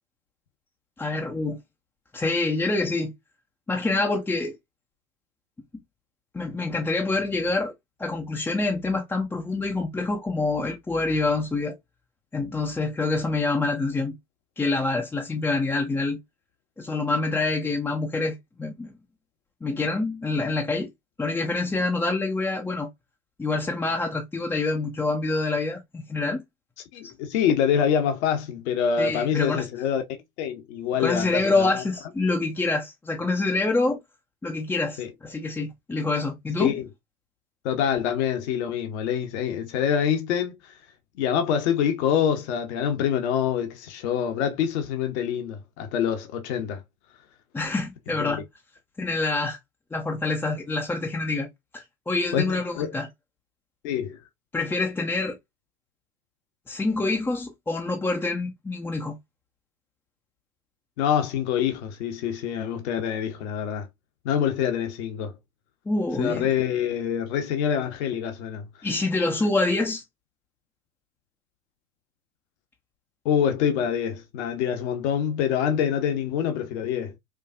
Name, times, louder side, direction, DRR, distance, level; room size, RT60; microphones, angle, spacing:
voice 1, 1.0-1.6 2.1-3.1 3.7-4.5 6.3-7.7 8.0-11.8 12.3-14.1 14.6-16.2 16.8-18.9 19.6-20.9 21.2-22.9 23.4-26.4 29.0-29.7 31.0-34.0 34.4-36.8 47.5-48.4 49.0-49.6 49.9-51.5 51.7-53.1 54.5-55.4 56.7-59.2 65.9-66.5 68.8-70.0, left 3 dB, 5° left, 0.4 m, -26 dB
voice 2, 26.9-30.0 30.4-31.8 35.0-35.1 36.6-36.9 37.6-40.6 41.2-46.8 48.2-48.4 52.3-52.9 53.8-54.2 61.0-63.9 64.2-65.3 66.2-68.7 73.2-77.1, left 8 dB, 55° left, 0.8 m, -25 dB
4.6 x 2.3 x 2.3 m
figure-of-eight pair, 85°, 40 cm